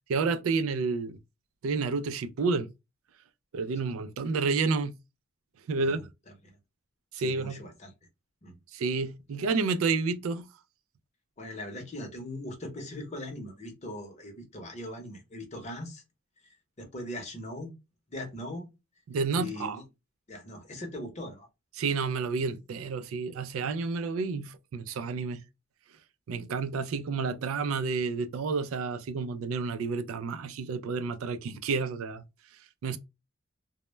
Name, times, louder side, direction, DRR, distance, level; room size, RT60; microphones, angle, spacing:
voice 1, 0.1-1.2 1.6-2.7 3.5-5.0 5.7-6.1 7.1-7.6 8.7-10.5 19.1-19.8 21.8-25.4 26.3-32.2 32.8-33.0, right 4 dB, 85° right, 0.3 m, -30 dB
voice 2, 7.2-7.9 8.4-8.6 11.4-16.0 16.8-17.7 18.1-18.7 19.3-19.8 20.3-21.5, left 1 dB, 35° left, 0.7 m, -40 dB
2.1 x 2.1 x 3.0 m
head